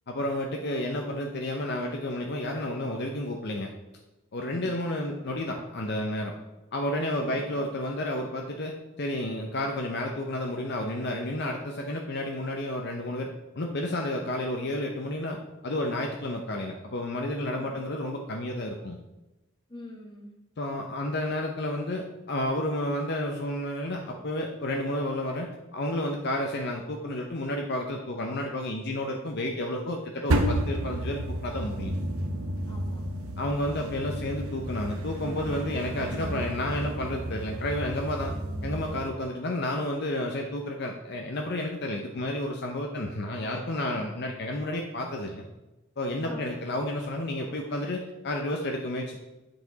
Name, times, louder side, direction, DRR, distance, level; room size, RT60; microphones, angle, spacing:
voice 1, 0.1-3.7 4.3-6.3 6.7-19.0 20.6-31.9 33.4-38.3 38.6-45.5 46.0-49.2, left 1 dB, 50° left, 2 dB, 0.7 m, -31 dB
voice 2, 7.3-7.6 17.5-17.8 19.7-20.3 32.7-33.1 46.2-46.6, left 1 dB, 20° left, 0 dB, 1.3 m, -45 dB
sound 1, 30.3-39.1, right 1 dB, 75° right, 0.8 m, -31 dB
8.3 x 5.0 x 3.9 m, 1.0 s
head